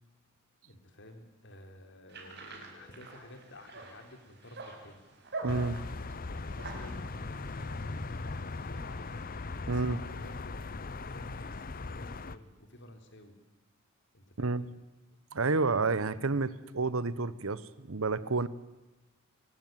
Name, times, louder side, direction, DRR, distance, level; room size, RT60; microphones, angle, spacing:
voice 1, 0.6-5.0 6.0-7.1 7.5-9.1 9.6-13.3 14.1-14.6, left 1 dB, 60° left, 6 dB, 3.7 m, -52 dB
sound 1, 2.0-4.4 6.8-10.2, left 1 dB, 25° left, 3.8 m, -63 dB
sound 2, 2.1-10.3, right 3 dB, 55° right, 5.5 m, -47 dB
voice 2, 5.4-5.8 9.7-10.0 14.4-14.7 15.3-18.5, right 3 dB, 75° right, 17 dB, 1.0 m, -30 dB
sound 3, 5.5-12.4, left 3 dB, 45° left, 0.8 m, -39 dB
23.0 x 19.5 x 9.2 m, 1.1 s
head